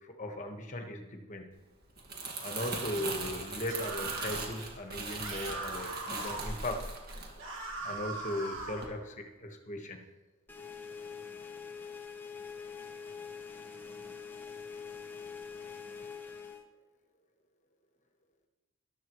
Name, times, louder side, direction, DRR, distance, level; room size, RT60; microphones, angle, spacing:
voice 1, 0.0-1.5 2.4-6.8 7.8-10.0, left 1 dB, 35° left, 4 dB, 1.2 m, -38 dB
Crumpling crinkling, 1.8-8.2 8.6-8.8, right 3 dB, 45° right, 1.8 m, -40 dB
sound 1, 3.7-4.5 5.2-6.5 7.4-8.9, right 2 dB, 60° right, 2.1 m, -40 dB
sound 2, 10.5-16.6, left 6 dB, 10° left, 0.7 m, -44 dB
14.0 x 12.0 x 3.1 m, 1.2 s
head